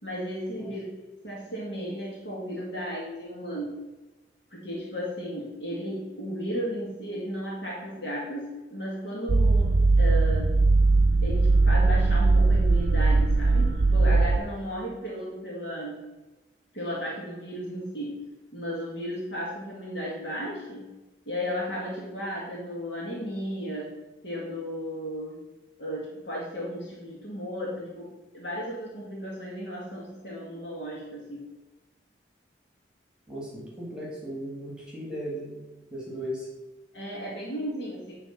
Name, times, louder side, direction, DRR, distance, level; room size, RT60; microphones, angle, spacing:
voice 1, 0.0-0.8 1.2-3.7 4.5-10.5 11.2-16.0 16.7-18.2 18.5-20.9 21.3-23.9 24.2-25.4 25.8-28.1 28.3-31.5 36.9-38.2, equal, 70° left, -5 dB, 1.9 m, -34 dB
sound 1, 9.3-14.4, right 3 dB, 75° right, 0.6 m, -20 dB
voice 2, 33.3-35.6 35.9-36.5, equal, 5° right, -5 dB, 1.7 m, -36 dB
10.0 x 3.3 x 5.7 m, 1.1 s
head